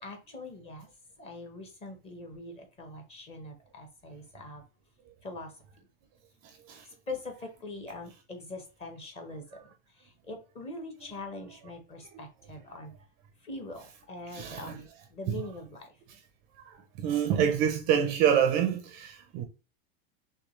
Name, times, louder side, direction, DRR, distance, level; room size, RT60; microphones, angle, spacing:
voice 1, 0.0-0.9 1.2-4.6 5.2-5.5 7.1-9.4 10.0-12.9 13.4-15.9, left 2 dB, 20° left, 0.9 m, -42 dB
voice 2, 14.3-14.8 15.3-15.4 16.6-19.4, right 9 dB, 30° right, 0.5 m, -27 dB
6.0 x 2.3 x 3.0 m
supercardioid pair, 170°, 31 cm